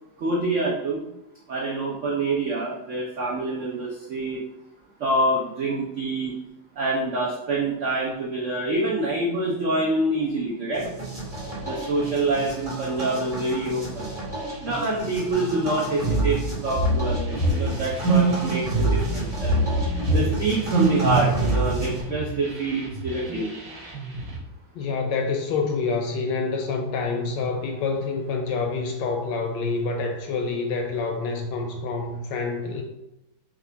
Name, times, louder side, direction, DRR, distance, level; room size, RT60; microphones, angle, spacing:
voice 1, 0.2-1.1 1.5-4.4 5.0-6.3 6.8-10.9 11.6-14.1 14.6-16.4 16.6-19.6 20.1-23.5, right 2 dB, 75° right, -3 dB, 0.7 m, -26 dB
sound 1, 10.7-22.0, right 2 dB, 20° right, 1.1 m, -26 dB
sound 2, 17.3-24.4, right 1 dB, 55° right, 1.1 m, -36 dB
voice 2, 24.7-32.8, left 4 dB, 75° left, 4 dB, 1.1 m, -27 dB
5.2 x 2.4 x 3.3 m, 0.88 s
omnidirectional pair, 2.2 m